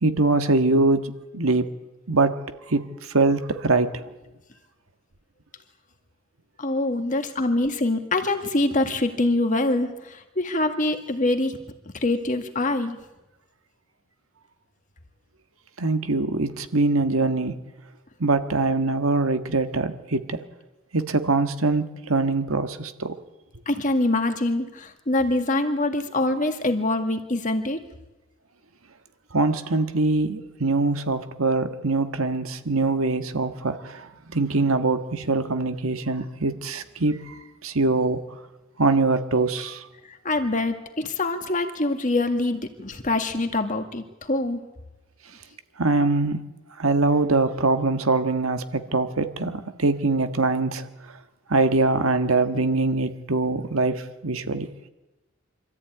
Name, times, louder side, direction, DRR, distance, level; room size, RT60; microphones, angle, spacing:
voice 1, 0.0-1.7 2.1-2.4 2.7-2.8 3.1-4.0 15.8-17.5 18.2-20.4 20.9-23.1 29.3-38.2 38.8-39.8 45.8-46.4 46.8-50.9 51.5-54.7, right 3 dB, 85° right, 8 dB, 1.6 m, -23 dB
voice 2, 6.6-11.6 11.9-13.0 23.7-27.8 40.1-44.6, left 2 dB, 40° left, 6 dB, 1.9 m, -24 dB
25.0 x 14.0 x 9.2 m, 1.0 s
head